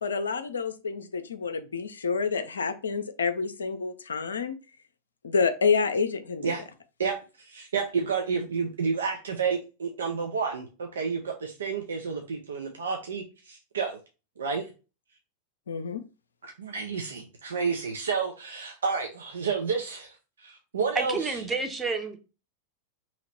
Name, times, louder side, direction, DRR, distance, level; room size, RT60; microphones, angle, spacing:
voice 1, 0.0-4.5 5.2-6.5 15.7-16.0, left 5 dB, 70° left, 10 dB, 0.4 m, -28 dB
voice 2, 7.0-14.0 14.4-14.7 16.4-21.4, right 5 dB, 70° right, 2 dB, 0.6 m, -30 dB
voice 3, 20.9-22.2, right 4 dB, 15° right, 5 dB, 0.8 m, -29 dB
2.9 x 2.9 x 4.1 m, 0.32 s
figure-of-eight pair, 90°, 0 cm